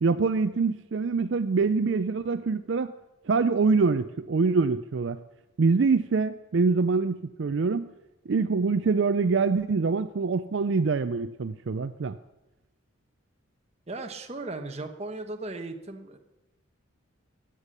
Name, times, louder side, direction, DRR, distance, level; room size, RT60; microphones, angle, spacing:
voice 1, 0.0-2.9 3.3-5.2 5.6-7.9 8.3-12.2, right 4 dB, 60° right, 11 dB, 0.4 m, -25 dB
voice 2, 13.9-16.2, right 2 dB, 30° right, 5 dB, 1.1 m, -36 dB
15.5 x 9.9 x 6.6 m, 1.0 s
head